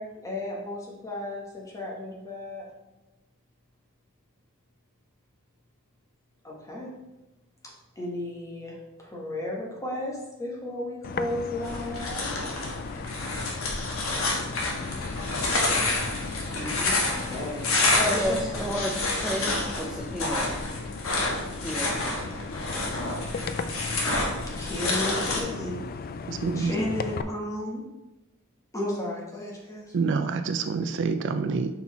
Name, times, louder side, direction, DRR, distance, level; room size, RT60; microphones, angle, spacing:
voice 1, 0.0-2.7 6.4-6.9 7.6-12.3 16.5-18.6 24.5-25.9 26.3-27.8 28.7-30.0, left 1 dB, 15° left, -3 dB, 1.4 m, -34 dB
sound 1, 11.0-27.2, left 4 dB, 45° left, 0.3 m, -37 dB
sound 2, 11.6-25.4, left 2 dB, 70° left, 1.4 m, -29 dB
voice 2, 18.1-20.5 21.6-22.0, equal, 5° right, -2 dB, 0.6 m, -31 dB
voice 3, 26.3-26.7 29.9-31.7, right 4 dB, 60° right, 9 dB, 0.4 m, -27 dB
5.7 x 4.4 x 4.1 m, 1.0 s
head